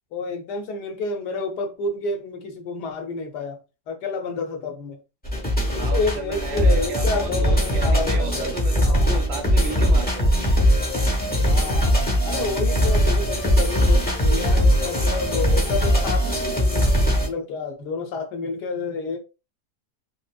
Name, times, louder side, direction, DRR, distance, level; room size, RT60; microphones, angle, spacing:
voice 1, 0.1-3.6 3.9-5.0 5.8-8.5 8.8-9.2 11.5-16.9 17.2-19.2, left 3 dB, 85° left, 1.4 m, -29 dB
sound 1, 5.2-17.3, equal, 10° left, 0.5 m, -20 dB
voice 2, 5.8-10.4, right 3 dB, 85° right, 1.5 m, -33 dB
5.1 x 2.0 x 2.3 m
omnidirectional pair, 1.7 m